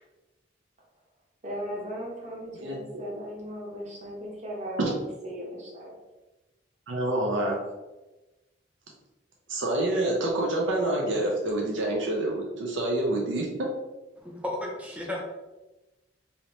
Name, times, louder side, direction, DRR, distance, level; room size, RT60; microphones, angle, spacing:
voice 1, 1.4-5.9, equal, 40° right, -2 dB, 0.9 m, -37 dB
voice 2, 6.9-7.6 9.5-13.5, right 1 dB, 85° right, -2 dB, 0.6 m, -27 dB
voice 3, 14.2-15.2, left 1 dB, 5° right, -2 dB, 0.6 m, -34 dB
2.8 x 2.7 x 3.2 m, 1.1 s
head